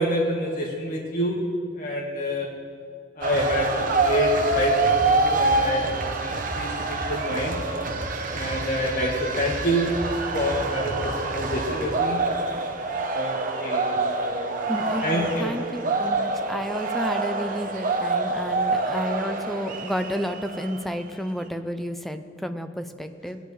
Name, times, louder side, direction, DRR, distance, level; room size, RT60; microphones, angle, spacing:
voice 1, 0.0-1.5 1.8-2.5 3.2-5.9 6.2-7.6 8.3-9.9 10.3-12.2 13.1-14.6 15.0-15.5, equal, 50° left, -3 dB, 1.6 m, -27 dB
sound 1, 3.2-21.0, right 3 dB, 45° right, 0.9 m, -26 dB
voice 2, 14.7-23.4, equal, ahead, 7 dB, 0.5 m, -31 dB
19.0 x 10.0 x 3.3 m, 2.3 s
head